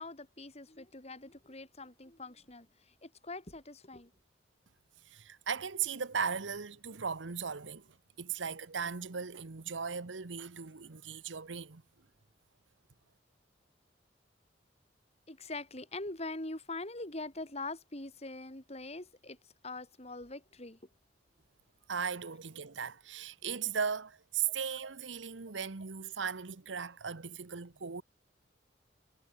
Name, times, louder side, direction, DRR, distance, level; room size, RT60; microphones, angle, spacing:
voice 1, 0.0-4.1 15.3-20.8 24.5-24.6, left 2 dB, 35° left, 3.7 m, -43 dB
voice 2, 5.1-7.9 8.2-11.8 21.9-28.0, right 6 dB, 85° right, 1.1 m, -37 dB
head